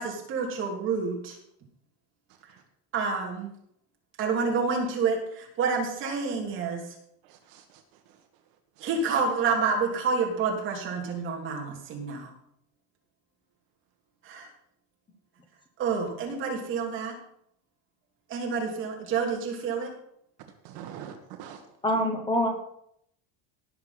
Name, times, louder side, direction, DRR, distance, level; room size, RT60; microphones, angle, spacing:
voice 1, 0.0-1.4 2.4-2.5 2.9-3.5 4.2-6.9 8.8-12.3 14.2-14.5 15.8-17.2 18.3-19.9, right 5 dB, 30° right, 0 dB, 3.1 m, -28 dB
voice 2, 7.2-8.2 8.8-8.9 20.6-21.6 21.9-22.0, right 9 dB, 55° right, 5 dB, 1.6 m, -45 dB
voice 3, 21.8-22.5, equal, 10° left, 4 dB, 1.1 m, -25 dB
17.5 x 6.7 x 5.9 m, 0.72 s
cardioid pair, 180°, 37 cm